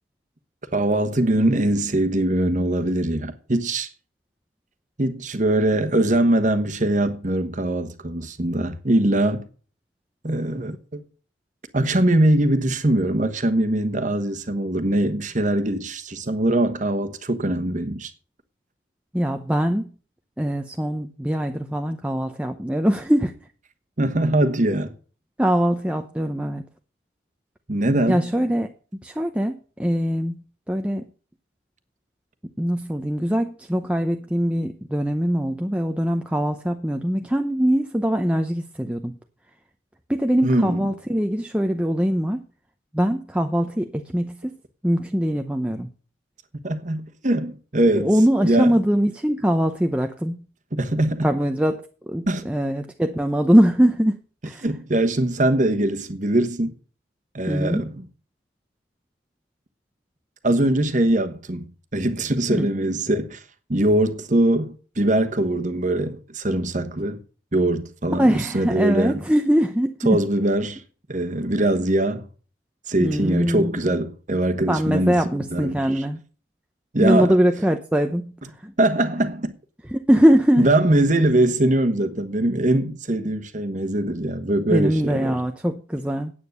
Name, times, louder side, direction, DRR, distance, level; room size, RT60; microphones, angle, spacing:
voice 1, 0.7-3.9 5.0-9.5 10.2-11.0 11.7-18.1 24.0-24.9 27.7-28.3 40.4-40.9 46.6-48.1 48.4-48.8 50.7-51.3 52.3-52.5 54.6-56.7 57.3-58.0 60.4-63.4 63.7-67.2 67.5-69.2 70.0-70.8 71.1-72.3 72.9-76.0 76.9-77.3 78.8-79.5 80.6-85.4, right 1 dB, 40° right, 1.2 m, -22 dB
voice 2, 19.1-19.9 20.4-23.3 25.4-26.7 28.1-28.7 29.0-30.4 30.7-31.1 32.6-39.2 40.1-42.4 42.9-44.5 44.8-45.9 47.9-50.4 51.2-51.8 52.1-54.2 54.4-54.7 57.5-57.8 62.5-62.7 68.2-70.2 73.0-74.0 74.7-76.2 77.0-78.7 79.9-80.7 84.7-86.3, equal, 5° right, 0.7 m, -22 dB
9.5 x 8.7 x 6.6 m
head